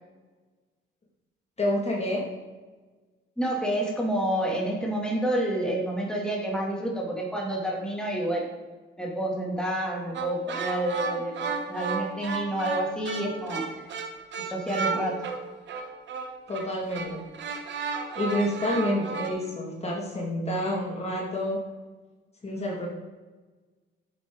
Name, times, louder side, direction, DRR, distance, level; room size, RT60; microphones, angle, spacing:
voice 1, 1.6-2.3 16.5-17.2 18.2-21.6 22.4-22.9, left 1 dB, 30° left, -2 dB, 2.3 m, -28 dB
voice 2, 3.4-8.5 9.0-13.7 14.4-15.2, right 1 dB, 5° left, -2 dB, 2.7 m, -29 dB
sound 1, 10.1-19.3, right 5 dB, 65° right, 1.4 m, -33 dB
11.5 x 7.6 x 4.0 m, 1.3 s
cardioid pair, 90°, 20 cm